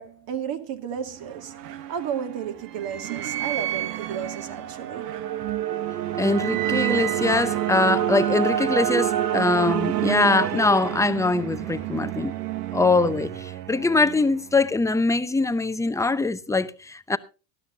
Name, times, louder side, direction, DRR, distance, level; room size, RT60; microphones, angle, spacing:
voice 1, 0.0-1.6 1.9-5.2, right 8 dB, 50° right, 2.3 m, -33 dB
sound 1, 1.0-14.7, right 12 dB, 90° right, 1.1 m, -28 dB
voice 2, 6.1-12.4 12.7-17.2, left 3 dB, 5° left, 0.7 m, -22 dB
19.0 x 12.5 x 2.8 m
hypercardioid pair, 100°, 47 cm